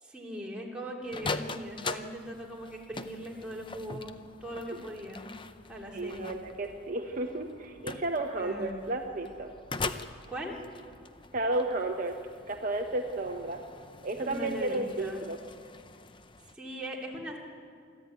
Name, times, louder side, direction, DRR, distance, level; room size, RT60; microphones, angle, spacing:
voice 1, 0.0-5.3 5.7-6.4 7.7-7.8 8.4-8.8 10.3-10.6 14.2-15.2 16.5-17.4, equal, 5° right, -3 dB, 2.9 m, -40 dB
sound 1, 1.0-16.5, left 3 dB, 25° left, 0.6 m, -42 dB
voice 2, 5.9-9.5 11.3-12.2 12.5-13.7 14.0-15.4, right 2 dB, 40° right, 3 dB, 1.0 m, -32 dB
24.0 x 14.0 x 9.2 m, 2.2 s
head